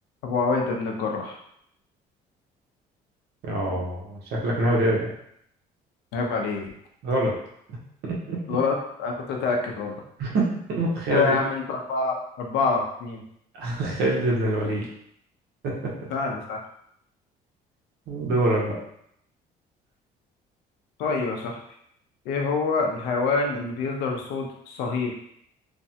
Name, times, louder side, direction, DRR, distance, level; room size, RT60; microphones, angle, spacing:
voice 1, 0.2-1.4 6.1-6.7 8.5-9.9 11.1-13.2 16.1-16.6 21.0-21.6 22.3-25.1, left 4 dB, 90° left, 1 dB, 0.6 m, -26 dB
voice 2, 3.4-5.1 7.0-7.3 7.7-7.8 8.0-8.4 10.2-11.4 13.6-14.9 15.6-15.7 18.1-18.7, right 1 dB, 80° right, -3 dB, 1.0 m, -25 dB
3.2 x 2.2 x 2.7 m, 0.71 s
cardioid pair, 110°, 17 cm